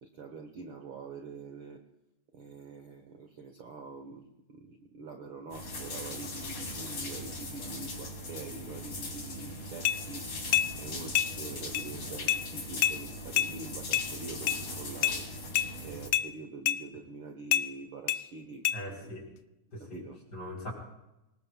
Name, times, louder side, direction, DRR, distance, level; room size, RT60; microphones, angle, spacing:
voice 1, 0.0-1.8 2.3-15.3 15.8-19.2 19.8-20.2, right 4 dB, 55° right, 4 dB, 1.6 m, -45 dB
sound 1, 5.5-16.1, left 1 dB, 55° left, 4.2 m, -39 dB
sound 2, 9.8-10.0 10.5-10.7 11.1-11.3 11.7-11.9 12.3-12.4 12.8-13.0 13.4-13.5 13.9-14.1 14.5-14.6 15.0-15.2 15.6-15.7 16.1-16.3 16.7-16.8 17.5-17.7 18.1-18.2 18.6-18.8, left 11 dB, 85° left, 1.3 m, -26 dB
voice 2, 18.7-19.2 19.7-20.0 20.3-20.7, equal, 35° left, 0 dB, 4.3 m, -40 dB
24.0 x 20.0 x 2.3 m, 0.94 s
omnidirectional pair, 3.3 m